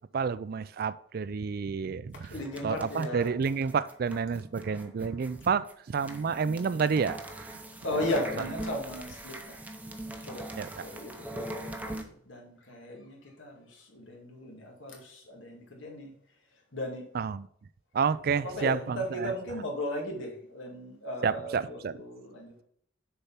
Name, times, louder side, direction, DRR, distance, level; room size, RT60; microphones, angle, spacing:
voice 1, 0.1-2.3 2.6-7.2 7.5-7.6 10.6-10.7 17.1-17.5 17.9-19.3 21.2-21.9, right 6 dB, 50° right, 0.4 m, -29 dB
voice 2, 2.1-3.4 7.8-9.6 10.2-16.1 16.7-17.0 18.3-22.6, left 1 dB, 85° left, 2.2 m, -36 dB
sound 1, 2.1-12.0, right 1 dB, 10° right, 0.7 m, -41 dB
6.8 x 4.4 x 5.7 m
head